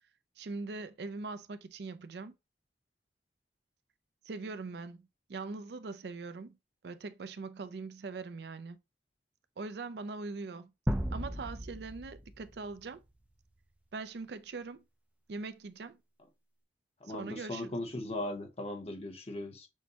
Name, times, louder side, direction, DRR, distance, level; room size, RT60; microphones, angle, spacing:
voice 1, 0.4-2.3 4.2-5.0 5.3-6.6 6.8-8.8 9.6-10.7 11.1-13.0 13.9-14.8 15.3-16.0 17.1-17.8, right 3 dB, 65° right, 0.4 m, -41 dB
sound 1, 10.9-12.8, equal, 10° right, 0.4 m, -35 dB
voice 2, 17.0-19.7, left 1 dB, 35° left, 0.9 m, -38 dB
6.3 x 2.2 x 2.8 m
head